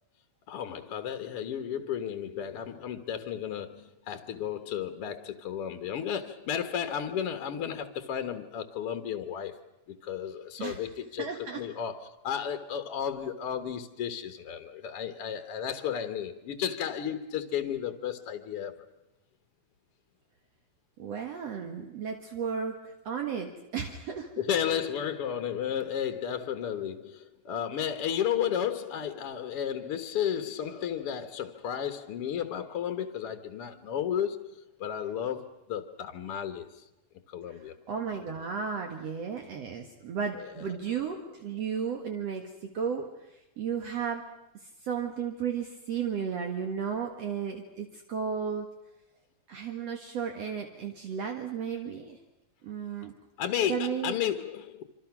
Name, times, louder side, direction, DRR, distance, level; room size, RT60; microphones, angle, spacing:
voice 1, 0.5-9.6 10.0-11.3 11.6-18.8 24.4-36.9 37.3-37.7 40.3-40.6 53.4-54.8, left 9 dB, 60° left, 1.9 m, -33 dB
voice 2, 11.2-11.6 21.0-24.3 37.5-44.2 44.8-48.7 49.5-52.2 52.6-53.1 53.7-54.1, right 7 dB, 60° right, 2.7 m, -34 dB
26.5 x 26.0 x 6.0 m
omnidirectional pair, 3.3 m